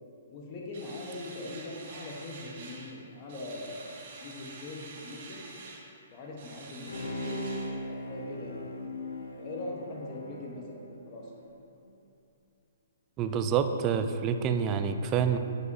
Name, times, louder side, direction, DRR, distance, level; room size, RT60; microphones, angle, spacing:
voice 1, 0.3-3.9 4.2-5.5 6.1-8.7 9.4-11.3, left 2 dB, 35° left, -2 dB, 1.1 m, -41 dB
sound 1, 0.7-3.0 3.3-5.9 6.4-7.7, right 3 dB, 50° right, 1.0 m, -47 dB
Bowed string instrument, 6.9-11.5 11.9-12.0, left 1 dB, 85° left, 0.6 m, -39 dB
voice 2, 13.2-15.4, right 7 dB, 30° right, 8 dB, 0.3 m, -27 dB
7.7 x 5.3 x 2.7 m, 2.7 s
hypercardioid pair, 140°, 0 cm